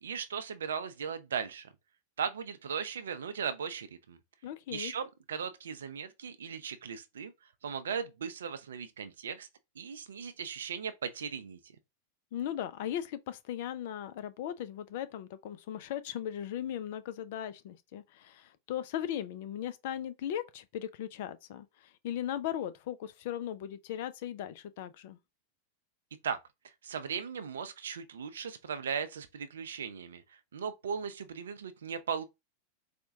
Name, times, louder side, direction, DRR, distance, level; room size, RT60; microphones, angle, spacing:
voice 1, 0.0-1.7 2.2-4.2 4.7-7.3 7.6-9.5 9.8-11.6 26.2-26.4 26.8-30.2 30.5-32.2, right 7 dB, 65° right, 0.4 m, -37 dB
voice 2, 4.4-4.9 12.3-21.7 22.0-25.2, left 10 dB, 50° left, 0.4 m, -38 dB
4.2 x 2.2 x 2.6 m
figure-of-eight pair, 90°, 0 cm